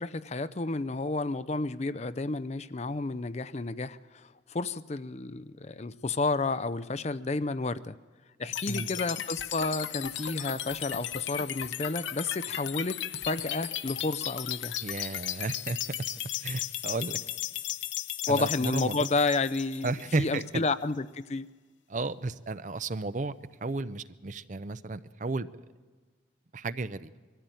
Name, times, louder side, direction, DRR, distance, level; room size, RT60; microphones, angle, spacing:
voice 1, 0.0-4.0 4.5-8.0 8.4-14.8 18.3-19.9 20.2-21.5, left 3 dB, 35° left, 14 dB, 0.5 m, -31 dB
sound 1, 8.5-20.5, left 11 dB, 75° left, 0.8 m, -36 dB
voice 2, 14.8-15.8 16.4-17.2 18.3-19.1 19.8-20.7 21.9-23.3 23.6-25.5 26.5-27.1, right 3 dB, 40° right, 14 dB, 0.6 m, -33 dB
21.5 x 14.5 x 9.1 m, 1.4 s
head